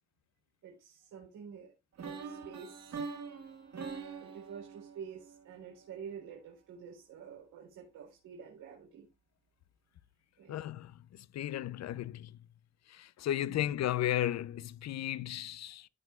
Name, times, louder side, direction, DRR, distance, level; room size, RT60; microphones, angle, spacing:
voice 1, 0.6-1.7 2.0-3.0 4.2-9.1 10.4-10.6 13.5-13.6, right 7 dB, 85° right, 4.2 m, -48 dB
sound 1, 2.0-6.0, right 5 dB, 60° right, 2.7 m, -44 dB
voice 2, 10.5-12.4 12.9-15.9, left 12 dB, 60° left, 0.6 m, -35 dB
17.0 x 5.9 x 2.3 m
cardioid pair, 90°, 30 cm